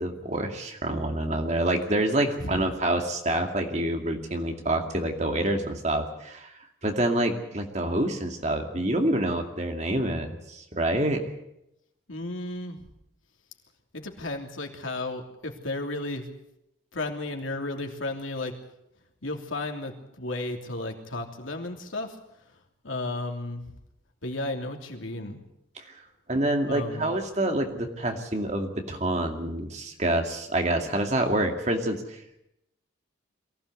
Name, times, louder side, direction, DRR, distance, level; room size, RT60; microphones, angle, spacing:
voice 1, 0.0-6.5 6.8-11.2 25.8-25.9 26.3-32.2, right 1 dB, 35° right, 4 dB, 2.4 m, -27 dB
voice 2, 12.1-12.8 13.9-16.3 16.9-18.5 19.2-22.2 22.8-23.6 24.2-25.4 26.6-27.1, left 2 dB, 90° left, 3 dB, 3.1 m, -33 dB
23.0 x 16.0 x 8.3 m, 0.85 s
head